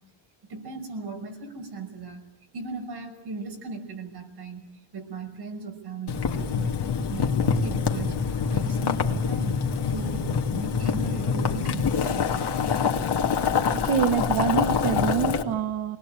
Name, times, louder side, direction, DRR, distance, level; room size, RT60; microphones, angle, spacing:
voice 1, 0.5-2.3 2.5-4.7 4.9-6.8 7.1-12.4, right 3 dB, 55° right, 4 dB, 5.8 m, -37 dB
Boiling, 6.1-15.4, left 6 dB, 55° left, 2.1 m, -25 dB
voice 2, 13.7-16.0, right 8 dB, 80° right, 7 dB, 1.4 m, -26 dB
28.0 x 20.0 x 9.0 m, 0.85 s
cardioid pair, 140°, 47 cm